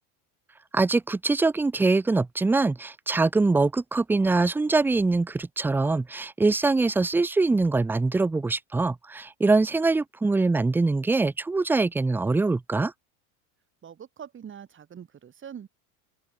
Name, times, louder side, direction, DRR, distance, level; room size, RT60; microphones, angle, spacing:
voice 1, 0.7-12.9, right 3 dB, 5° right, 0.3 m, -23 dB
voice 2, 13.8-15.7, right 8 dB, 30° right, 2.0 m, -43 dB
open air
supercardioid pair, 110°, 42 cm